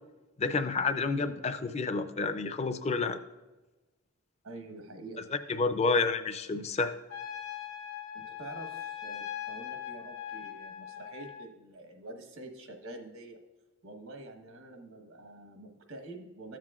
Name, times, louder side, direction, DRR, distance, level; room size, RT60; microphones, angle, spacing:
voice 1, 0.4-3.2 5.5-6.9, left 4 dB, 30° left, 10 dB, 0.4 m, -29 dB
voice 2, 4.4-5.2 8.1-13.4 13.8-16.6, right 2 dB, 85° right, 5 dB, 1.1 m, -46 dB
Trumpet, 7.1-11.5, left 9 dB, 75° left, 0.9 m, -40 dB
13.0 x 7.5 x 2.4 m, 1.1 s
head